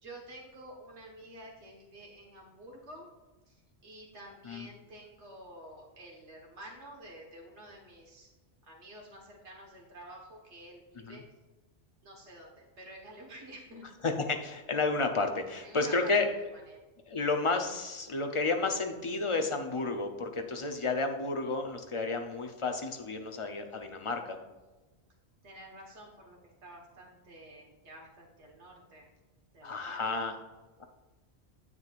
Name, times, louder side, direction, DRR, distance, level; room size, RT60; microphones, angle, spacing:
voice 1, 0.0-3.1 3.5-8.3 8.6-11.2 12.0-13.8 15.6-16.8 25.4-29.1 29.5-30.2, right 1 dB, 85° right, -1 dB, 1.7 m, -50 dB
voice 2, 14.0-16.3 17.1-24.4 29.6-30.3 30.8-30.9, left 3 dB, 35° left, 4 dB, 0.6 m, -31 dB
9.7 x 7.2 x 2.4 m, 1.2 s
omnidirectional pair, 1.1 m